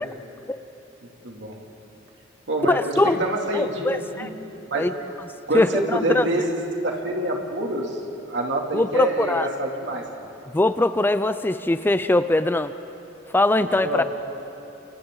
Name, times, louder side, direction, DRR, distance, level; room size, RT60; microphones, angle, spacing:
voice 1, 1.2-1.6 2.5-4.3 4.7-4.9 5.5-6.5 6.8-8.0 8.3-10.0 13.8-14.0, right 1 dB, 65° right, 1 dB, 2.8 m, -26 dB
voice 2, 2.7-3.2 3.5-4.3 4.7-4.9 5.5-6.3 8.7-9.5 10.5-12.7 13.3-14.0, left 2 dB, 10° left, 12 dB, 0.4 m, -21 dB
30.0 x 28.5 x 3.9 m, 2.9 s
head